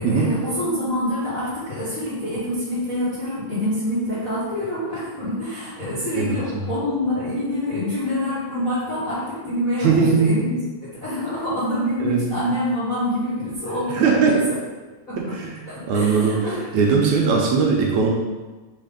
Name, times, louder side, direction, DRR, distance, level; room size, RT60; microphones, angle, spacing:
voice 1, 0.0-9.9 10.2-14.6 15.1-15.3 15.7-16.6, left 1 dB, 40° left, -11 dB, 1.2 m, -26 dB
voice 2, 6.2-6.7 9.8-10.3 12.0-12.4 13.9-14.5 15.2-18.1, right 5 dB, 75° right, -1 dB, 2.1 m, -20 dB
5.6 x 3.4 x 5.1 m, 1.2 s
omnidirectional pair, 3.6 m